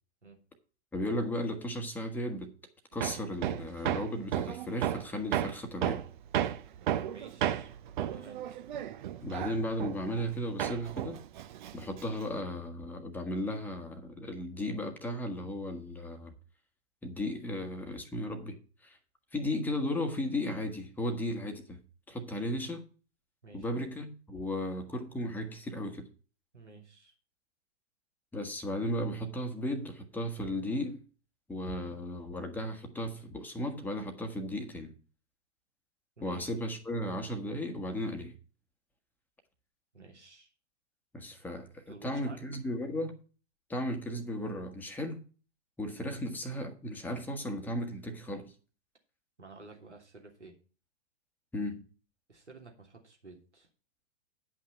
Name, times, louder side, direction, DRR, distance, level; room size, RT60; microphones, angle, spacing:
voice 1, 0.9-2.5 2.9-6.0 9.2-11.2 11.7-16.3 17.0-18.6 18.8-19.0 19.3-21.8 22.1-22.9 23.5-26.1 28.3-31.0 31.5-34.9 36.2-38.4 41.1-43.2 43.7-45.2 45.8-48.5 51.5-51.9, left 1 dB, 5° left, 1.3 m, -35 dB
Hammer, 3.0-10.3 10.6-12.4, right 11 dB, 45° right, 0.7 m, -33 dB
voice 2, 6.9-8.5 23.4-23.8 26.5-27.1 36.2-36.5 39.9-40.5 41.9-42.4 49.4-50.5 52.3-53.7, right 3 dB, 80° right, 3.0 m, -52 dB
9.9 x 5.8 x 5.7 m
figure-of-eight pair, 110°, 34 cm